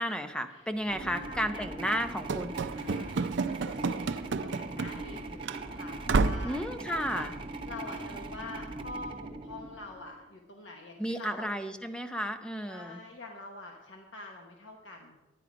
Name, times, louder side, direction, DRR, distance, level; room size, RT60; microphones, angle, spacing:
voice 1, 0.0-2.6 6.4-7.3 11.0-13.0, equal, 5° left, 8 dB, 0.6 m, -33 dB
sound 1, 0.8-10.2, right 2 dB, 25° right, 0.8 m, -41 dB
voice 2, 1.0-1.7 2.7-7.3 7.7-11.5 12.6-15.2, left 2 dB, 85° left, 2 dB, 1.1 m, -46 dB
Run / Slam, 2.3-5.2 5.4-5.6 6.1-6.6, right 4 dB, 75° right, 0.5 m, -30 dB
11.0 x 9.8 x 5.0 m, 1.1 s
head